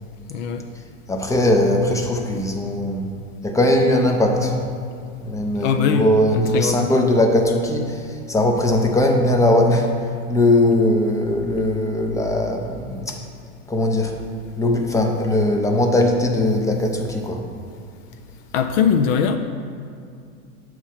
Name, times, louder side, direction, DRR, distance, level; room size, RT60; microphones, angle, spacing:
voice 1, 0.3-0.6 5.6-7.1 18.5-19.4, left 7 dB, 65° left, 6 dB, 0.5 m, -21 dB
voice 2, 1.1-3.1 3.4-4.6 5.2-13.2 13.7-14.2 14.6-17.4, left 1 dB, 10° left, 2 dB, 0.5 m, -19 dB
7.1 x 3.1 x 5.7 m, 2.3 s
hypercardioid pair, 110°, 42 cm